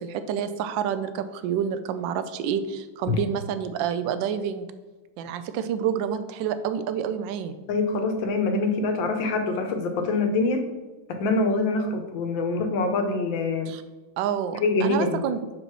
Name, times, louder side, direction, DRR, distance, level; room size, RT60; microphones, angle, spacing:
voice 1, 0.0-4.7 5.2-7.5 13.7-13.8 14.2-15.4, right 8 dB, 75° right, 11 dB, 1.2 m, -28 dB
voice 2, 7.7-10.6 11.1-13.7 14.6-15.2, left 3 dB, 70° left, 6 dB, 1.5 m, -25 dB
5.0 x 4.8 x 6.0 m, 1.2 s
omnidirectional pair, 2.2 m